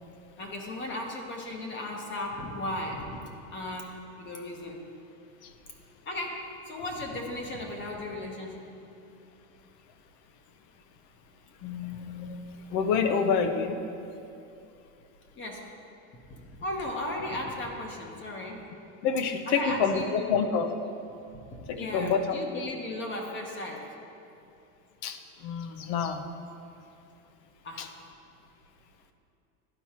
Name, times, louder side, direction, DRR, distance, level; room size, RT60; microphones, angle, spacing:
voice 1, 0.4-3.2 3.5-4.8 6.1-6.4 6.7-8.6 15.4-15.6 16.3-18.6 19.5-20.1 21.7-23.8 27.6-27.9, left 1 dB, 25° left, 1 dB, 0.9 m, -36 dB
voice 2, 11.6-12.4 12.7-13.8 19.0-20.7 21.7-22.3 25.0-25.2 25.4-26.3 27.8-27.9, left 6 dB, 50° left, 8 dB, 0.7 m, -27 dB
12.0 x 4.5 x 2.9 m, 2.7 s
supercardioid pair, 125°, 43 cm